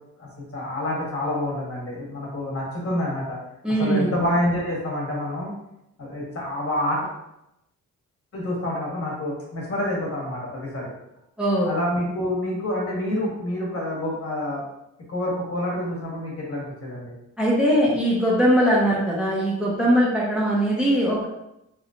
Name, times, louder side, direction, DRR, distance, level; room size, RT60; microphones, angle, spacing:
voice 1, 0.2-3.4 3.8-5.5 6.0-7.1 8.3-10.9 11.6-14.6 15.1-17.1, left 1 dB, 45° left, -3 dB, 1.3 m, -27 dB
voice 2, 3.6-4.1 11.4-11.7 17.4-21.3, equal, 5° right, -6 dB, 0.8 m, -21 dB
3.1 x 3.1 x 2.5 m, 0.85 s
cardioid pair, 95°, 32 cm